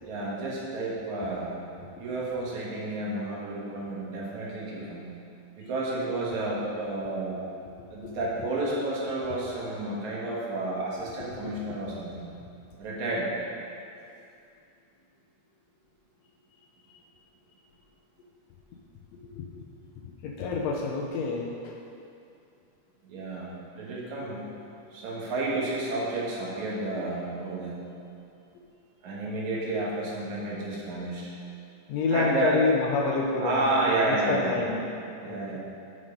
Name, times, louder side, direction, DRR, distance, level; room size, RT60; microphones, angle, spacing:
voice 1, 0.0-1.5 2.0-5.1 5.6-7.4 7.9-12.3 12.8-13.3 23.0-23.5 23.7-27.7 29.0-31.3 32.1-32.6 33.4-34.6 35.2-35.6, right 2 dB, 75° right, -6 dB, 2.9 m, -31 dB
voice 2, 19.3-19.7 20.0-21.8 31.9-33.7 34.1-35.6, left 4 dB, 75° left, -1 dB, 1.7 m, -29 dB
7.2 x 6.5 x 5.2 m, 2.6 s
omnidirectional pair, 3.3 m